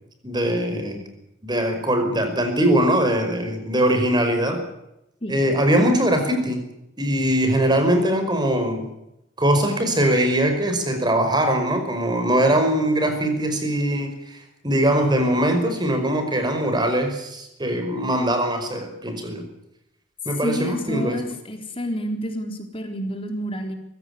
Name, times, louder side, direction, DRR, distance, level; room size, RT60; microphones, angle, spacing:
voice 1, 0.2-1.0 1.4-4.6 5.3-6.6 7.0-8.8 9.4-19.4 20.3-21.2, right 1 dB, 20° right, 6 dB, 5.3 m, -21 dB
voice 2, 20.4-23.7, equal, 30° left, 5 dB, 4.0 m, -29 dB
23.0 x 16.0 x 9.8 m, 0.84 s
head